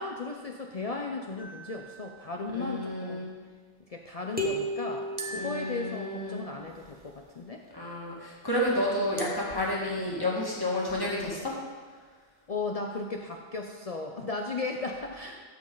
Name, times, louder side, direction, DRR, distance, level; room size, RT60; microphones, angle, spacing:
voice 1, 0.0-3.2 3.9-7.6 12.5-15.4, left 3 dB, 45° left, 2 dB, 0.6 m, -36 dB
sound 1, 1.4-2.8 5.2-6.8 9.2-10.3, right 1 dB, 30° right, 0.9 m, -44 dB
voice 2, 2.5-3.3 5.4-6.4 7.7-11.5, left 1 dB, 20° left, -5 dB, 2.1 m, -30 dB
sound 2, 4.4-6.3, equal, 10° right, 1.2 m, -34 dB
14.0 x 5.3 x 3.9 m, 1.5 s
omnidirectional pair, 1.1 m